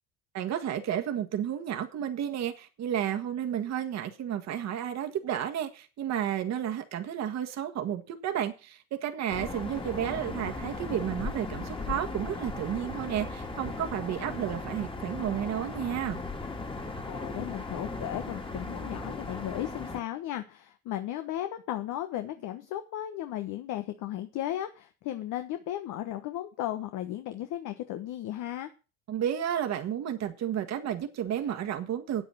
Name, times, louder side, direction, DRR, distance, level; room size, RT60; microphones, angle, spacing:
voice 1, 0.3-16.2 29.1-32.2, right 10 dB, 45° right, 5 dB, 1.6 m, -32 dB
sound 1, 9.3-20.0, left 3 dB, 15° left, 2.2 m, -37 dB
voice 2, 17.0-28.7, left 12 dB, 55° left, 8 dB, 1.2 m, -35 dB
8.8 x 8.3 x 6.2 m, 0.34 s
supercardioid pair, 90°, 38 cm